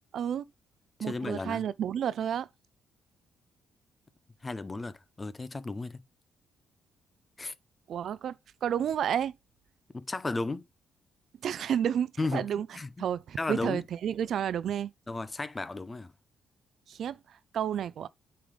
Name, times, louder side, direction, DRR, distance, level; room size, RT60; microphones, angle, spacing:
voice 1, 0.1-0.5 1.0-2.5 7.9-9.3 11.4-12.7 13.0-14.9 16.9-18.1, right 9 dB, 65° right, 0.4 m, -31 dB
voice 2, 1.1-1.6 4.4-6.0 7.4-7.5 9.9-10.6 12.2-12.5 12.7-13.1 13.4-13.8 15.1-16.1, left 3 dB, 20° left, 0.6 m, -34 dB
8.6 x 3.3 x 5.0 m
cardioid pair, 90°, 0 cm